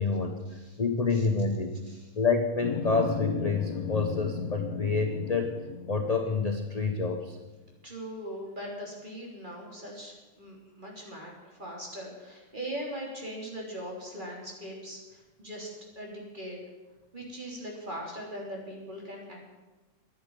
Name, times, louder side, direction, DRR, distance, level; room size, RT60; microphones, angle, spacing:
voice 1, 0.0-0.4 0.8-1.7 2.1-5.5 5.9-7.4, left 4 dB, 30° left, 5 dB, 0.8 m, -28 dB
sound 1, 2.6-7.1, left 7 dB, 60° left, 1.5 m, -36 dB
voice 2, 7.8-15.7 16.0-16.6 17.1-19.4, equal, 25° right, -1 dB, 3.7 m, -40 dB
11.0 x 10.5 x 9.7 m, 1.2 s
omnidirectional pair, 1.8 m